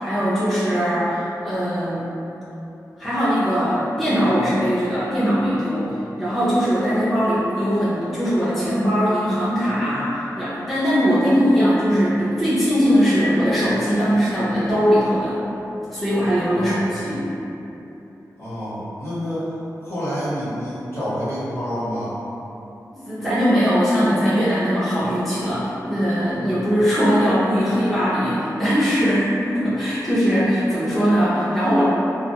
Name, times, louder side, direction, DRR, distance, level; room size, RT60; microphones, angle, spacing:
voice 1, 0.0-2.1 3.0-15.4 15.9-17.3 22.9-31.9, equal, ahead, -13 dB, 0.6 m, -20 dB
voice 2, 16.4-16.9 18.4-19.5 19.8-22.2 26.4-26.7, equal, 40° left, -13 dB, 1.2 m, -28 dB
2.4 x 2.3 x 2.8 m, 3.0 s
wide cardioid pair, 100°, 7 cm